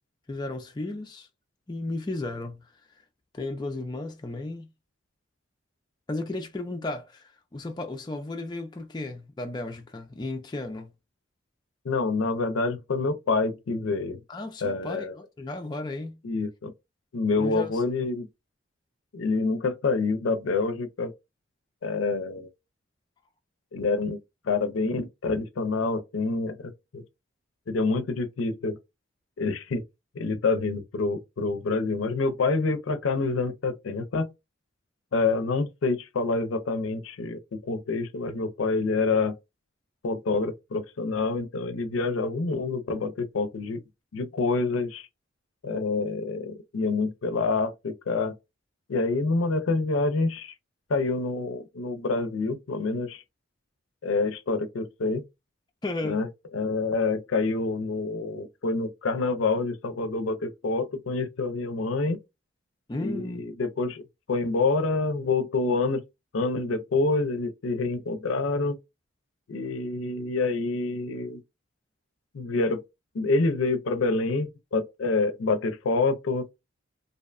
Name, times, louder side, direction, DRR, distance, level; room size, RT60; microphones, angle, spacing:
voice 1, 0.3-1.3 1.7-2.7 3.3-4.7 6.1-10.9 14.3-16.2 17.4-18.1 55.8-56.2 62.9-63.4, left 2 dB, 20° left, 0.4 m, -34 dB
voice 2, 11.8-14.2 14.6-15.1 16.2-16.7 17.1-18.3 19.1-21.1 21.8-22.5 23.7-24.2 24.4-27.0 27.7-28.8 29.4-29.8 30.1-34.3 35.1-39.3 40.0-43.8 44.1-45.1 45.6-48.3 48.9-50.5 50.9-53.2 54.0-55.2 56.0-56.3 56.5-62.2 63.0-64.0 64.3-66.0 66.3-68.8 69.5-71.4 72.3-72.8 73.1-76.5, left 3 dB, 85° left, 0.5 m, -27 dB
2.6 x 2.1 x 2.4 m
head